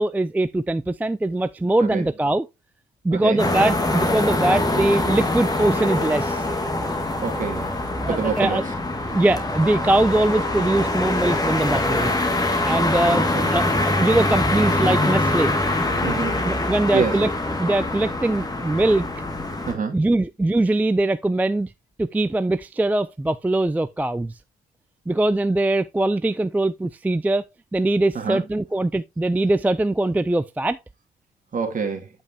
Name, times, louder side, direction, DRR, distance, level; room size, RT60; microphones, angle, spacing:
voice 1, 0.0-2.5 3.0-6.4 8.1-8.6 9.1-12.1 12.6-13.7 14.0-15.5 16.4-17.3 17.6-19.0 19.9-21.7 22.0-24.3 25.1-27.4 27.7-30.8, right 2 dB, 10° right, 0.3 m, -22 dB
voice 2, 3.1-3.4 7.2-7.7 8.1-8.6 13.1-13.5 16.0-16.4 16.9-17.1 19.7-20.0 28.1-28.4 31.5-32.1, right 5 dB, 40° right, 2.3 m, -26 dB
sound 1, 3.4-19.7, left 2 dB, 20° left, 2.0 m, -24 dB
8.6 x 5.3 x 2.8 m
cardioid pair, 90°, 20 cm